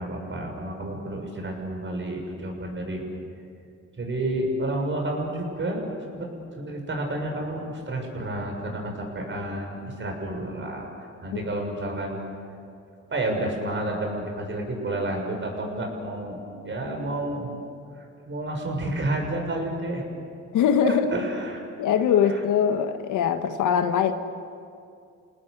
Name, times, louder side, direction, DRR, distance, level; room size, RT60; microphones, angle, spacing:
voice 1, 0.0-3.0 4.0-5.8 6.1-6.3 6.6-10.9 11.2-12.2 13.1-16.4 16.6-17.5 18.3-20.0 20.8-21.6 22.3-22.4, right 1 dB, 40° right, 2 dB, 7.0 m, -30 dB
voice 2, 20.5-21.1 21.8-24.1, left 8 dB, 80° left, 8 dB, 1.6 m, -22 dB
30.0 x 18.5 x 8.0 m, 2.4 s
cardioid pair, 90°, 30 cm